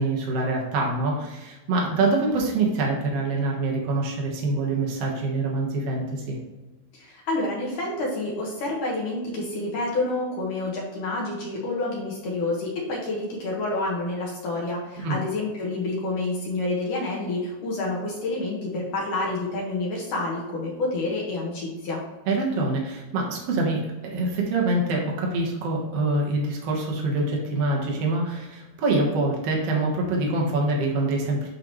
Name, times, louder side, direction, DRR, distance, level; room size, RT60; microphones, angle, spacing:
voice 1, 0.0-6.4 15.0-15.1 22.3-31.5, right 2 dB, 75° right, -2 dB, 1.4 m, -25 dB
voice 2, 6.9-22.0, left 2 dB, 60° left, -3 dB, 2.6 m, -28 dB
11.0 x 4.0 x 3.1 m, 1.2 s
omnidirectional pair, 4.8 m